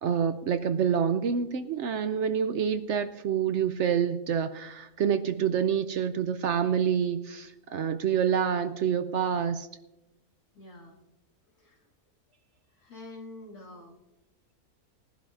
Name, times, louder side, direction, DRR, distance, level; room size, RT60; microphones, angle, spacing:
voice 1, 0.0-9.7, right 7 dB, 65° right, 10 dB, 0.7 m, -27 dB
voice 2, 10.5-11.0 11.5-11.9 12.7-14.0, left 2 dB, 90° left, -3 dB, 2.8 m, -47 dB
21.0 x 11.5 x 2.5 m, 0.98 s
omnidirectional pair, 1.6 m